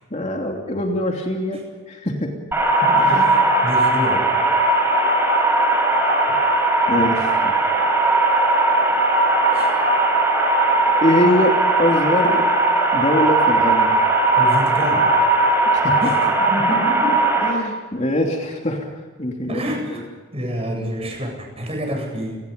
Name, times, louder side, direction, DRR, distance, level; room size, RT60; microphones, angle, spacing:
voice 1, 0.1-1.6 1.9-2.3 2.9-3.2 6.9-7.5 11.0-12.4 12.9-14.0 15.7-16.3 17.4-19.6 19.9-20.0, equal, 30° left, 1 dB, 2.9 m, -23 dB
sound 1, 2.5-17.5, right 2 dB, 10° right, 5.4 m, -18 dB
voice 2, 2.8-4.3 9.5-9.7 14.4-15.1 16.0-16.2 16.5-17.2 19.5-20.0 20.3-22.4, equal, 30° right, 2 dB, 7.9 m, -28 dB
29.5 x 20.5 x 5.3 m, 1.4 s
head